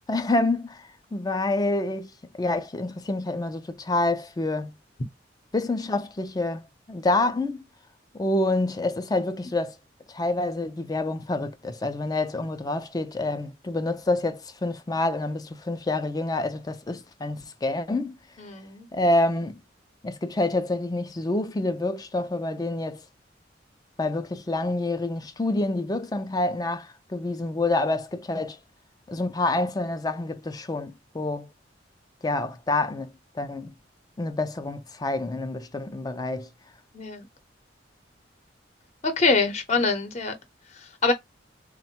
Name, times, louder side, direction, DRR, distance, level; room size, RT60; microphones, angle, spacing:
voice 1, 0.1-4.7 5.5-6.6 6.9-7.6 8.1-9.8 10.1-18.2 18.9-19.6 20.0-23.0 24.0-28.6 29.1-31.5 32.2-33.7 34.2-36.5, left 2 dB, 20° left, 0.4 m, -27 dB
voice 2, 18.4-18.9 36.9-37.2 39.0-40.3 41.0-41.1, left 3 dB, 40° left, 0.7 m, -24 dB
3.5 x 2.2 x 4.3 m
head